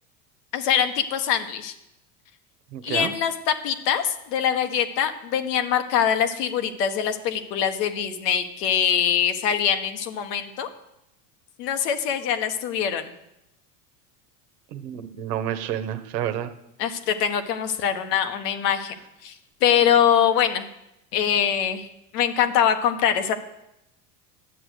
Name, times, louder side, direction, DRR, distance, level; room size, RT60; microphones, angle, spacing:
voice 1, 0.5-1.7 2.8-10.7 11.6-13.1 16.8-18.9 19.2-20.7 21.1-21.9 22.1-23.3, left 8 dB, 75° left, 8 dB, 1.4 m, -23 dB
voice 2, 2.7-3.1 14.7-16.5, right 10 dB, 80° right, 9 dB, 1.3 m, -29 dB
11.0 x 7.8 x 6.5 m, 0.85 s
hypercardioid pair, 100°, 48 cm